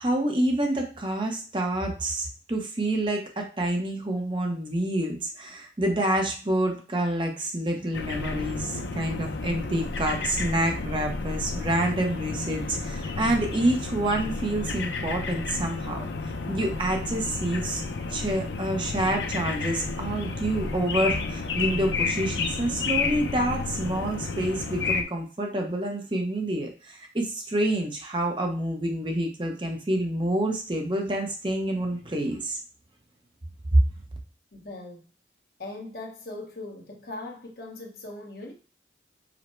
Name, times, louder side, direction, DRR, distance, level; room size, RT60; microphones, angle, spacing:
voice 1, 0.0-16.0 16.5-17.8 18.1-32.6 33.7-33.8, right 1 dB, 25° right, 0.7 m, -27 dB
sound 1, 7.9-25.0, left 4 dB, 75° left, 0.5 m, -31 dB
voice 2, 34.5-35.1 35.6-38.5, left 2 dB, 55° left, 1.0 m, -40 dB
5.1 x 2.1 x 4.3 m
head